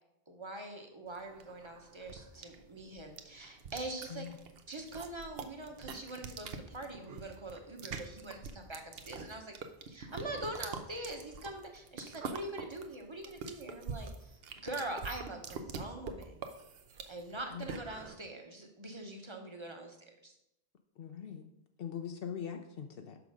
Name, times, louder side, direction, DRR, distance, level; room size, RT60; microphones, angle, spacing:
voice 1, 0.3-4.3 4.7-9.6 9.9-16.4 17.1-20.3, right 2 dB, 30° right, 3 dB, 1.0 m, -43 dB
sound 1, 1.1-18.2, right 5 dB, 75° right, 0.9 m, -45 dB
voice 2, 21.0-21.5 21.8-23.2, left 8 dB, 70° left, 5 dB, 0.8 m, -41 dB
6.2 x 6.1 x 5.0 m, 0.82 s
omnidirectional pair, 1.0 m